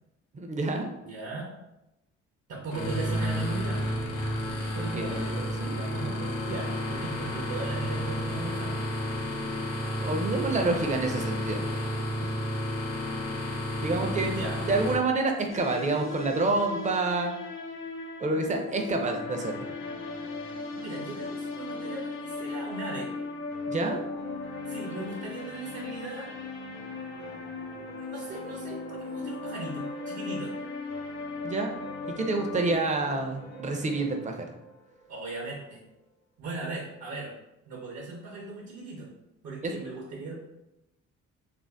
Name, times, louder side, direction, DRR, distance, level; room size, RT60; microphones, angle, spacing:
voice 1, 0.3-0.9 4.8-5.7 10.0-11.7 12.2-12.3 13.8-14.3 14.7-17.3 18.2-19.7 23.7-24.0 31.4-31.7 32.2-34.5 39.6-39.8, right 3 dB, 25° right, 3 dB, 0.4 m, -28 dB
voice 2, 1.1-1.5 2.5-3.9 4.7-8.9 13.8-14.6 18.3-19.0 19.8-20.1 20.7-23.1 24.7-26.3 27.8-30.6 35.1-35.8 36.4-37.3 37.7-39.1 39.4-40.3, right 2 dB, 65° right, -3 dB, 0.7 m, -38 dB
sound 1, 2.7-14.9, equal, 90° left, 0.7 m, -31 dB
sound 2, 15.5-32.8, left 3 dB, 45° left, 0.4 m, -38 dB
sound 3, 19.4-36.1, left 1 dB, 65° left, 0.9 m, -48 dB
2.5 x 2.0 x 3.3 m, 0.93 s
cardioid pair, 90°, 30 cm